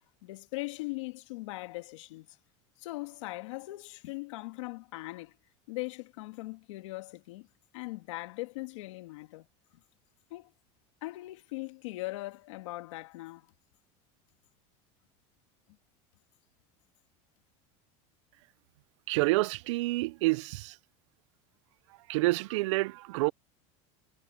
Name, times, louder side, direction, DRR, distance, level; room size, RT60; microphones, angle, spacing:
voice 1, 0.2-2.4 2.8-5.4 5.7-7.5 7.7-9.5 10.3-10.5 11.0-13.5, left 21 dB, 80° left, 2.1 m, -40 dB
voice 2, 19.1-20.8 22.1-23.3, right 22 dB, 80° right, 0.4 m, -28 dB
cardioid pair, 170°, 15 cm